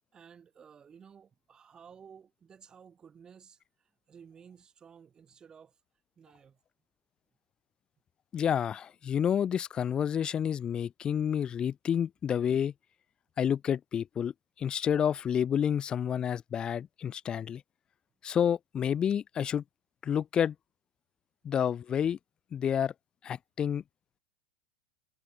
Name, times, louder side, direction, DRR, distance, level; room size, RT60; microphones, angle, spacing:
voice 1, 0.1-5.8 6.2-6.6, right 7 dB, 20° right, 5.3 m, -55 dB
voice 2, 8.3-12.7 13.4-14.3 14.6-17.6 18.2-19.6 20.0-20.5 21.4-22.2 22.5-22.9 23.2-23.8, left 8 dB, 25° left, 0.5 m, -29 dB
supercardioid pair, 135°, 4 cm